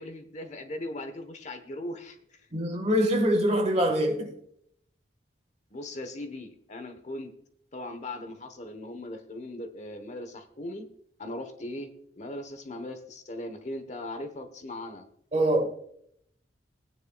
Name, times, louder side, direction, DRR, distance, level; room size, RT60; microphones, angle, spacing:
voice 1, 0.0-2.2 5.7-7.3 7.7-10.9 11.2-15.0, left 1 dB, 40° left, 1.1 m, -39 dB
voice 2, 2.5-4.3 15.3-15.7, equal, 35° right, 1.5 m, -24 dB
18.0 x 9.6 x 2.3 m
head